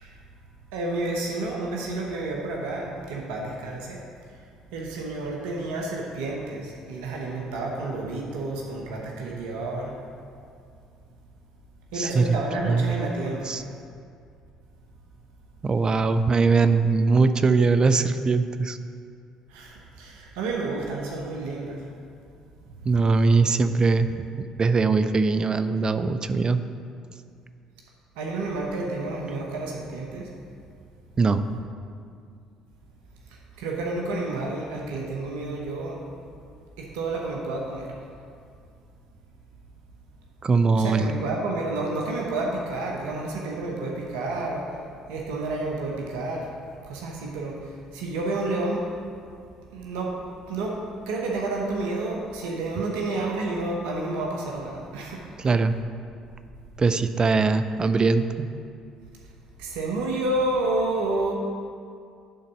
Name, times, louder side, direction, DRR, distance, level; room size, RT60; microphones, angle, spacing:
voice 1, 0.7-4.0 4.3-4.4 4.7-9.9 11.9-13.5 19.5-21.8 22.7-22.8 28.2-30.3 33.3-36.0 36.8-37.9 40.7-44.7 45.1-46.5 46.9-48.9 49.7-50.1 50.5-50.8 51.1-55.2 59.6-61.3, right 2 dB, 75° right, -1 dB, 0.9 m, -30 dB
voice 2, 11.9-12.4 12.7-12.9 13.5-13.6 15.6-18.8 22.8-26.6 31.2-31.4 40.4-41.1 55.4-55.8 56.8-58.5, right 4 dB, 35° right, 11 dB, 0.5 m, -21 dB
10.0 x 3.9 x 5.6 m, 2.3 s
hypercardioid pair, 55°, 2 cm